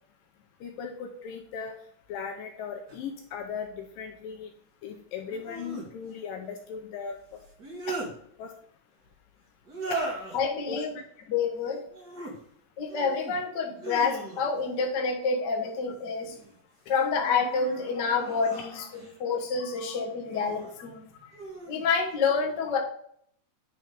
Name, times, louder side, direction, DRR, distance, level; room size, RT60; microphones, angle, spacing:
voice 1, 0.6-1.8 2.1-4.5 4.8-7.4 7.9-8.0 8.4-8.5 9.9-10.1 10.7-10.8 17.9-18.0 18.7-18.8, left 6 dB, 75° left, 3 dB, 2.1 m, -38 dB
sound 1, 2.9-3.0 5.3-5.9 7.4-8.1 9.6-10.4 11.9-12.3 12.8-13.4 13.8-14.7 15.9-16.5 17.1-19.2 20.2-20.7 21.3-21.8, right 2 dB, 30° right, 2.0 m, -38 dB
voice 2, 10.3-10.9 11.3-11.8 12.8-16.3 16.9-18.9 19.2-21.1 21.7-22.8, left 5 dB, 55° left, -1 dB, 1.1 m, -28 dB
9.8 x 4.5 x 5.0 m, 0.65 s
omnidirectional pair, 4.5 m